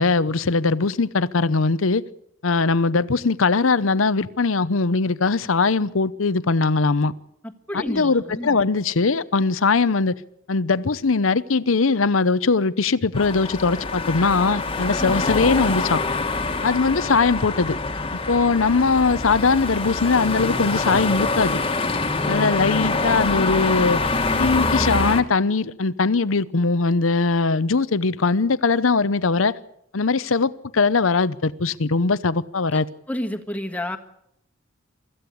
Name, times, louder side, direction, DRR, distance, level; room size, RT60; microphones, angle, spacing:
voice 1, 0.0-2.0 2.4-7.1 7.7-10.2 10.5-16.0 16.6-17.8 18.3-21.6 22.2-24.0 24.4-29.5 29.9-32.9, left 4 dB, 85° left, 0.8 m, -20 dB
voice 2, 7.7-8.6 15.0-15.1 22.2-22.4 33.1-34.0, left 1 dB, 10° left, 1.5 m, -30 dB
sound 1, 13.1-25.2, left 3 dB, 25° left, 1.6 m, -25 dB
24.5 x 14.5 x 8.5 m
head